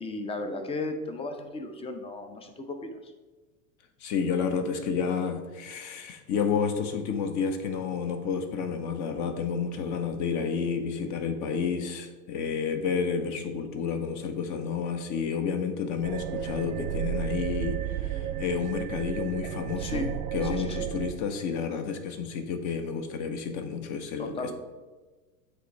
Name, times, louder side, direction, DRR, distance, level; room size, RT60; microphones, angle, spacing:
voice 1, 0.0-3.1 19.8-20.1 20.4-20.9 24.2-24.5, left 2 dB, 15° left, 7 dB, 0.5 m, -35 dB
voice 2, 4.0-24.5, left 6 dB, 40° left, 7 dB, 0.9 m, -30 dB
sound 1, 16.0-21.1, right 11 dB, 75° right, 0.8 m, -33 dB
8.1 x 3.2 x 4.5 m, 1.3 s
hypercardioid pair, 105°, 45 cm